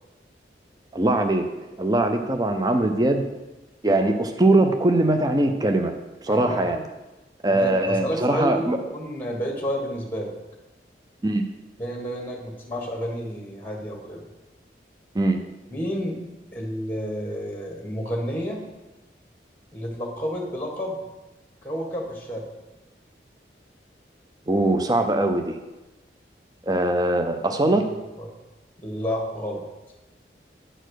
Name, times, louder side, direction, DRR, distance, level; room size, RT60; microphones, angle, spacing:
voice 1, 0.9-1.5 1.8-3.2 3.8-5.9 6.2-6.8 7.4-8.8 11.2-11.4 15.1-15.4 24.5-25.6 26.6-27.9, right 2 dB, 20° right, 6 dB, 0.5 m, -21 dB
voice 2, 6.3-6.6 7.5-8.7 8.9-10.3 11.8-14.2 15.7-16.2 16.5-18.6 19.7-21.0 21.6-22.5 28.2-28.3 28.8-29.6, equal, 10° left, 1 dB, 1.4 m, -30 dB
9.0 x 4.3 x 6.3 m, 1.1 s
head